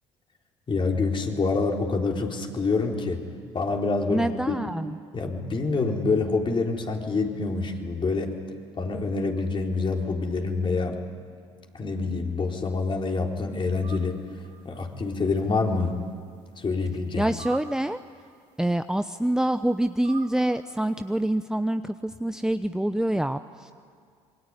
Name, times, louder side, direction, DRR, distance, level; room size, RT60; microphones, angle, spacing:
voice 1, 0.7-3.2 3.5-4.6 5.1-8.4 8.7-11.0 11.7-14.2 14.6-16.0 16.6-17.3, left 3 dB, 35° left, 1 dB, 4.1 m, -26 dB
voice 2, 4.1-4.9 17.2-18.0 18.6-23.7, right 1 dB, 5° right, 9 dB, 0.9 m, -26 dB
sound 1, 13.8-14.2 14.4-15.1 15.8-16.0 16.6-16.7 17.2-18.1 19.3-19.4 20.0-21.3, right 8 dB, 55° right, 3.4 m, -46 dB
27.0 x 22.5 x 9.8 m, 2.1 s
hypercardioid pair, 60°, 14 cm